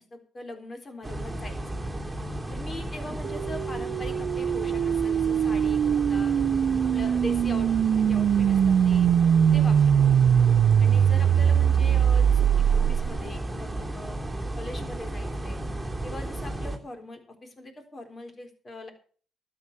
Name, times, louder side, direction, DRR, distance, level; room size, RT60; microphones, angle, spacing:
voice 1, 0.1-1.6 2.5-6.3 6.8-7.7 8.1-9.1 9.5-10.0 10.8-14.2 14.5-15.6 16.0-18.9, left 1 dB, 35° left, 6 dB, 4.0 m, -41 dB
sound 1, 1.0-16.8, right 1 dB, 10° right, 3.3 m, -34 dB
sound 2, 3.2-13.3, right 8 dB, 60° right, 0.5 m, -22 dB
12.5 x 8.7 x 6.9 m, 0.43 s
cardioid pair, 90°, 0 cm